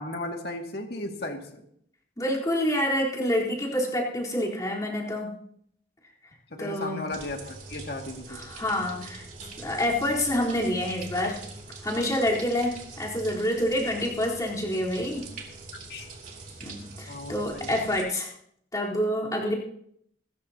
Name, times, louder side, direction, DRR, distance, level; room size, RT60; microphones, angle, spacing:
voice 1, 0.0-1.6 6.5-8.4 15.9-16.1 17.1-17.7, left 2 dB, 55° left, 2 dB, 2.2 m, -35 dB
voice 2, 2.2-5.3 6.6-7.0 8.3-9.2 9.6-11.4 11.8-15.2 16.6-18.3 18.7-19.6, left 1 dB, 20° left, -5 dB, 3.9 m, -27 dB
sound 1, 7.1-18.0, right 3 dB, 40° right, 3.0 m, -43 dB
28.0 x 14.0 x 2.9 m, 0.68 s
head